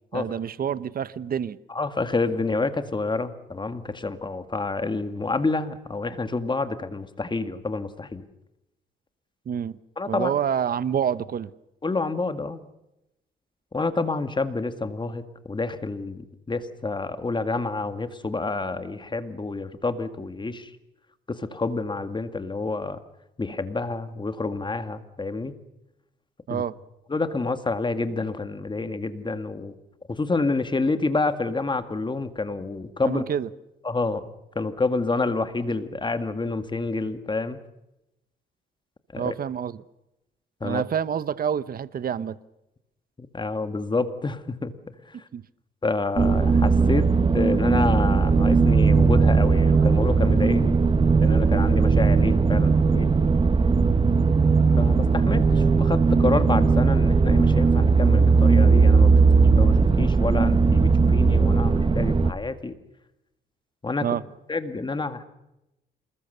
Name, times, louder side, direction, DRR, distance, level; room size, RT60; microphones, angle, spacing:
voice 1, 0.1-1.6 9.5-9.8 10.1-11.5 26.5-26.7 33.0-33.5 39.2-39.8 40.6-42.4 45.3-45.4 53.5-53.6 64.0-64.2, right 8 dB, 50° right, 0.9 m, -27 dB
voice 2, 1.7-8.3 10.0-10.3 11.8-12.6 13.7-20.7 21.3-23.0 23.4-25.6 26.5-26.6 27.1-29.7 30.1-33.2 33.8-34.3 34.6-37.6 39.1-39.3 40.6-40.8 43.3-44.7 45.1-45.2 45.8-47.1 47.3-50.8 51.2-53.1 54.8-62.8 63.8-64.1 64.5-65.2, left 3 dB, 25° left, 2.0 m, -28 dB
sound 1, 46.2-62.3, right 4 dB, 25° right, 1.1 m, -18 dB
27.0 x 20.5 x 6.8 m
cardioid pair, 90°, 20 cm